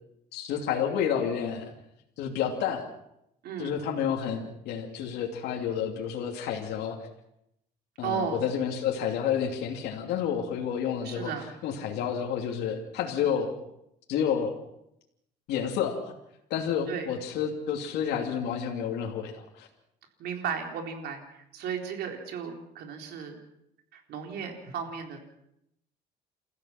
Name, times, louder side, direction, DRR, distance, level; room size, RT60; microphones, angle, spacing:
voice 1, 0.3-1.7 2.2-2.9 3.6-7.0 8.0-11.3 11.6-13.6 14.1-14.6 15.5-16.1 16.5-19.7, left 8 dB, 85° left, 0 dB, 2.9 m, -30 dB
voice 2, 3.4-3.7 8.0-8.4 11.0-11.5 16.9-17.1 20.2-23.4 23.9-25.2, right 7 dB, 75° right, 3 dB, 4.1 m, -35 dB
29.5 x 15.0 x 5.9 m, 0.79 s
cardioid pair, 110°, 17 cm